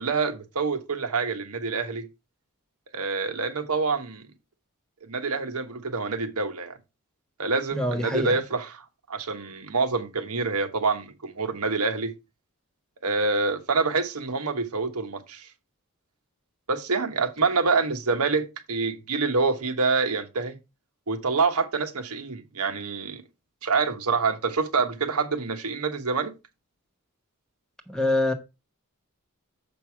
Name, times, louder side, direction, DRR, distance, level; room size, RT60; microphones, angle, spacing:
voice 1, 0.0-2.1 2.9-4.3 5.1-6.8 7.4-12.1 13.0-15.5 16.7-20.6 21.1-23.2 23.6-26.3, right 4 dB, 85° right, 1.2 m, -26 dB
voice 2, 7.7-8.3 27.9-28.3, left 1 dB, 5° left, 0.9 m, -25 dB
7.3 x 5.4 x 4.6 m
head